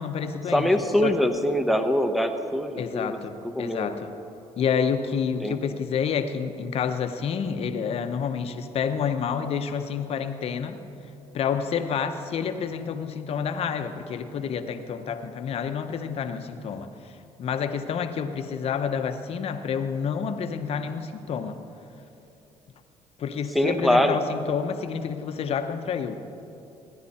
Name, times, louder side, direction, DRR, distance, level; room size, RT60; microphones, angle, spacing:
voice 1, 0.0-0.7 1.0-1.1 2.8-4.1 4.6-10.8 11.3-16.9 17.4-21.6 23.2-26.2, left 7 dB, 55° left, 0.9 m, -29 dB
voice 2, 0.5-3.2 3.4-3.9 5.4-5.6 23.5-24.2, left 1 dB, ahead, 1.1 m, -23 dB
17.5 x 11.5 x 4.3 m
supercardioid pair, 80°, 12 cm